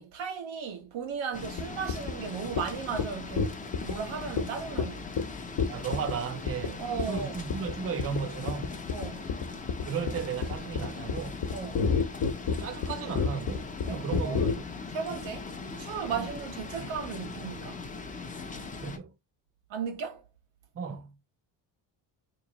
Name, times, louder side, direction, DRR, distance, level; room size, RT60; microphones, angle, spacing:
voice 1, 0.0-5.1 6.8-7.4 8.9-9.3 11.5-11.9 13.8-14.4 14.9-15.5 15.8-17.8 19.7-20.2, right 6 dB, 85° right, 1.3 m, -36 dB
sound 1, 1.3-19.0, left 4 dB, 20° left, 0.5 m, -40 dB
sound 2, 1.6-1.7 1.9-2.1 2.6-2.7 3.0-3.1 3.4-3.9 4.4-4.5 4.8-4.9 5.2-5.3 5.6-6.1 6.5-6.7 7.0-7.2 7.5-7.7 8.0-8.2 8.5-14.5, left 5 dB, 60° left, 0.9 m, -28 dB
voice 2, 5.7-8.8 9.8-11.4 12.6-14.7 16.1-16.3 16.7-16.9 18.8-19.2 20.7-21.2, right 6 dB, 30° right, 0.5 m, -35 dB
3.0 x 2.7 x 4.0 m
cardioid pair, 145°, 45 cm